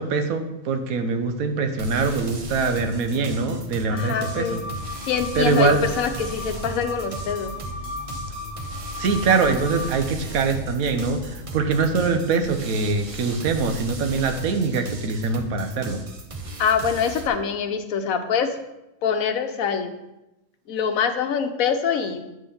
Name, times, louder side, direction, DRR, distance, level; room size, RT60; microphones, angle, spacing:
voice 1, 0.0-4.6 5.4-5.8 9.0-16.0, right 4 dB, 85° right, 7 dB, 1.3 m, -23 dB
sound 1, 1.8-17.3, right 2 dB, 35° right, 0.6 m, -37 dB
voice 2, 3.9-4.6 5.0-7.5 16.6-18.6 19.0-19.9 20.7-22.3, left 7 dB, 80° left, 8 dB, 1.2 m, -24 dB
sound 2, 3.9-9.9, left 2 dB, 40° left, 1.3 m, -36 dB
sound 3, 4.5-12.0, left 2 dB, 60° right, 2.0 m, -40 dB
9.1 x 3.7 x 6.9 m, 0.95 s
omnidirectional pair, 1.4 m